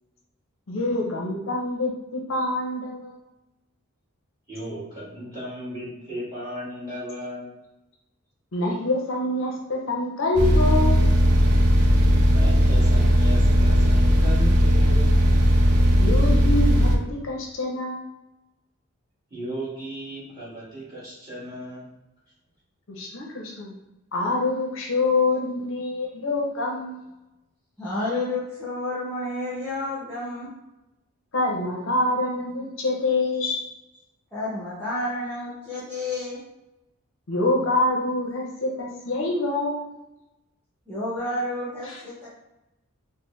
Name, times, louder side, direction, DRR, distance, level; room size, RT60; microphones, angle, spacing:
voice 1, 0.7-3.2 8.5-11.0 16.0-18.1 22.9-23.7 24.1-27.1 31.3-33.7 37.3-39.9 41.9-42.0, left 2 dB, 60° left, 0 dB, 0.6 m, -26 dB
voice 2, 4.5-7.5 12.3-15.2 19.3-21.9, right 1 dB, 15° right, -10 dB, 1.5 m, -35 dB
sound 1, 10.4-17.0, equal, 85° right, 0.5 m, -17 dB
voice 3, 27.8-30.5 34.3-36.4 40.9-42.3, left 2 dB, 10° left, -10 dB, 0.7 m, -30 dB
4.1 x 2.0 x 3.1 m, 0.96 s
head